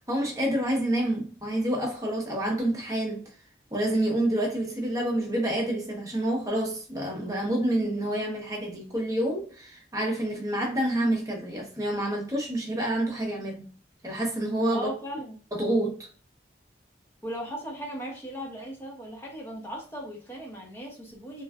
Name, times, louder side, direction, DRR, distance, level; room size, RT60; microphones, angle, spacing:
voice 1, 0.1-3.2 3.7-13.7 14.0-14.9 15.5-16.1, right 1 dB, 20° right, 0.8 m, -28 dB
voice 2, 14.7-15.3 17.2-21.4, right 1 dB, 15° left, 0.9 m, -37 dB
3.3 x 2.4 x 2.2 m
head